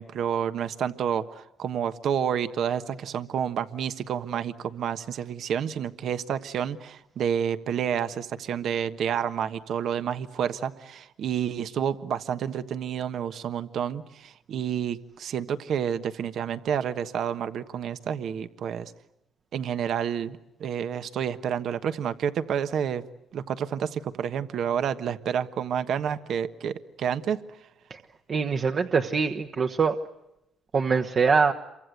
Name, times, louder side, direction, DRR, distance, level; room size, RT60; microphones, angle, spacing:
voice 1, 0.0-18.9 19.5-23.0 23.3-27.4, right 8 dB, 70° right, 10 dB, 1.3 m, -29 dB
voice 2, 28.3-30.0 30.7-31.5, right 5 dB, 45° right, 4 dB, 1.2 m, -23 dB
28.0 x 24.0 x 8.0 m, 0.89 s
cardioid pair, 90°, 0 cm